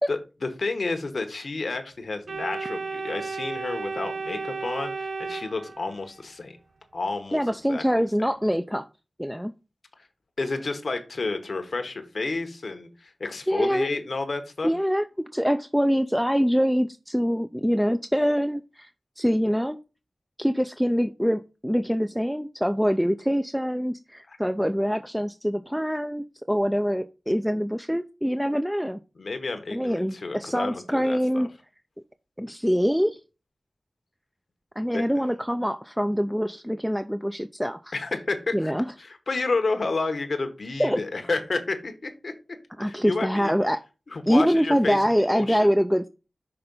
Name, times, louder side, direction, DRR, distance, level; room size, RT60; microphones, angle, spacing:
voice 1, 0.1-6.6 6.9-7.4 7.7-8.3 10.4-14.7 24.3-24.4 29.2-31.5 34.9-35.0 37.9-38.7 39.0-42.3 42.8-43.5 44.1-45.0 45.3-45.7, left 3 dB, 70° left, 7 dB, 1.0 m, -30 dB
Organ, 2.3-6.2, right 4 dB, 85° right, 0.4 m, -33 dB
voice 2, 7.3-8.8 9.2-9.5 13.5-13.9 14.6-18.9 19.2-19.8 20.4-29.0 29.7-31.5 32.4-33.2 34.8-37.9 38.5-38.9 40.8-41.0 42.8-43.8 44.3-46.1, equal, ahead, 8 dB, 0.4 m, -24 dB
5.9 x 3.4 x 5.2 m, 0.31 s
cardioid pair, 45°, 0 cm